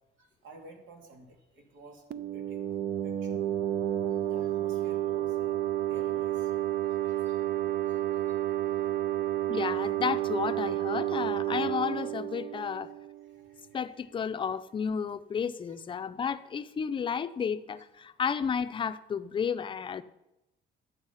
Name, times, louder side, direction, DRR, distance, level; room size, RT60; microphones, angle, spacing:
voice 1, 0.2-2.0 2.3-2.7 3.0-3.3 4.2-5.6 5.9-6.5 7.0-7.4 7.9-8.5 8.8-8.9 12.5-12.6 13.4-13.6 13.9-14.0 15.7-15.8 17.7-17.8, right 2 dB, 85° right, 2 dB, 2.5 m, -53 dB
sound 1, 2.1-13.5, right 13 dB, 55° right, 0.5 m, -31 dB
voice 2, 9.5-12.9 13.7-20.0, left 7 dB, 25° left, 12 dB, 0.5 m, -32 dB
11.5 x 8.0 x 5.5 m, 0.93 s
cardioid pair, 155°, 19 cm